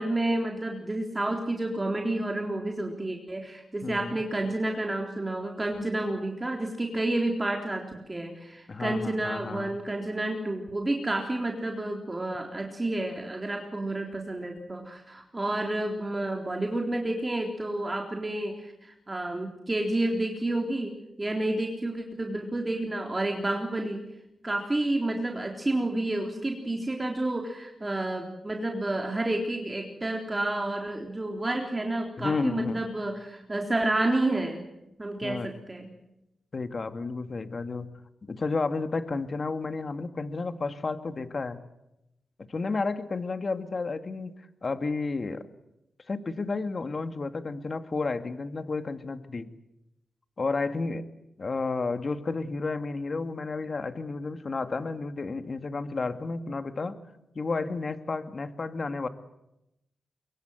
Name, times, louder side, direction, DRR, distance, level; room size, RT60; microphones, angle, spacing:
voice 1, 0.0-24.1 24.4-34.7 35.0-36.0, right 1 dB, 20° right, 2 dB, 3.7 m, -30 dB
voice 2, 3.8-4.2 8.7-9.8 32.2-32.8 35.2-35.5 36.5-37.9 38.2-41.6 42.4-45.5 46.1-49.5 50.4-51.1 51.4-57.0 57.4-59.1, left 3 dB, 45° left, 9 dB, 2.1 m, -32 dB
24.0 x 23.0 x 8.1 m, 0.88 s
cardioid pair, 75°, 0 cm